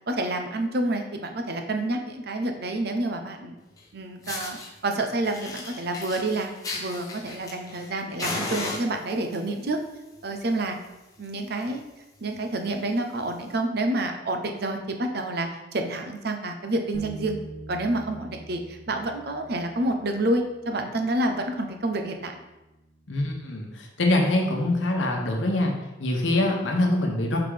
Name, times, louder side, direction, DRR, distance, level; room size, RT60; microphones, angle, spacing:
voice 1, 0.1-3.5 3.9-4.6 4.8-9.8 10.2-10.8 11.2-11.8 12.2-17.4 17.7-22.3, right 2 dB, 60° right, 5 dB, 0.7 m, -28 dB
Fire, 3.8-3.9 4.2-4.7 5.2-7.9 8.2-9.4 10.2-10.4 10.7-10.8 11.2-11.3 11.6-11.8 12.4-12.5 13.4-13.5, left 2 dB, 20° left, 1.0 m, -35 dB
Bass guitar, 16.9-23.2, right 1 dB, 50° left, 1.3 m, -45 dB
voice 2, 23.1-25.7 26.0-27.4, left 1 dB, 85° left, 1 dB, 1.1 m, -24 dB
5.9 x 3.7 x 4.9 m, 1.0 s
head